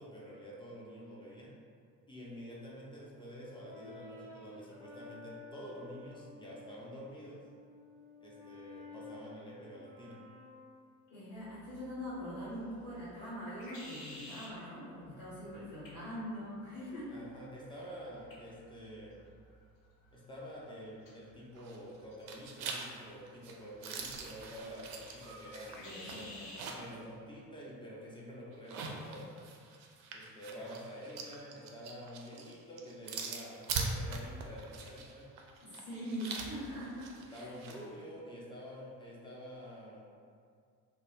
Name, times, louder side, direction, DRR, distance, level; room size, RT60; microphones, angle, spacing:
voice 1, 0.0-1.5 2.1-7.4 8.2-10.2 17.1-19.2 20.1-26.2 26.7-29.3 30.1-35.3 37.3-40.1, equal, 10° left, -5 dB, 0.4 m, -48 dB
Brass instrument, 2.7-6.7 7.3-11.3, left 3 dB, 5° right, 0.8 m, -53 dB
voice 2, 11.1-17.1 25.7-26.5 35.6-37.5, equal, 85° left, -13 dB, 1.0 m, -43 dB
sound 1, 11.3-26.7, left 1 dB, 60° left, 0.8 m, -55 dB
sound 2, 21.6-22.0 22.3-27.0 27.4-27.5 28.5-37.8, right 4 dB, 60° right, 0.5 m, -42 dB
2.2 x 2.0 x 3.0 m, 2.2 s
figure-of-eight pair, 50°, 50 cm